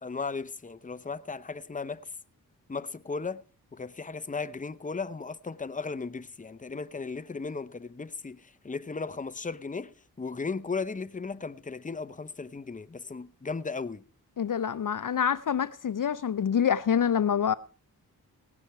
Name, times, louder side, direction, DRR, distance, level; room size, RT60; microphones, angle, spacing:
voice 1, 0.0-2.0 2.7-3.4 3.7-14.0, left 4 dB, 20° left, 0.8 m, -36 dB
voice 2, 14.4-17.5, left 8 dB, 55° left, 0.6 m, -26 dB
18.0 x 9.8 x 4.7 m
cardioid pair, 45°, 38 cm